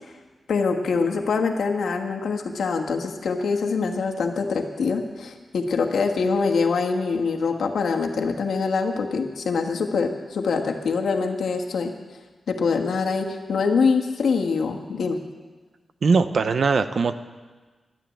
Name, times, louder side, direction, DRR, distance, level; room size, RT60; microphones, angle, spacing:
voice 1, 0.5-11.9 12.5-15.2, left 4 dB, 90° left, 3 dB, 1.4 m, -24 dB
voice 2, 16.0-17.2, right 4 dB, 55° right, 11 dB, 0.6 m, -20 dB
11.5 x 10.5 x 9.0 m, 1.3 s
wide cardioid pair, 165°, 0 cm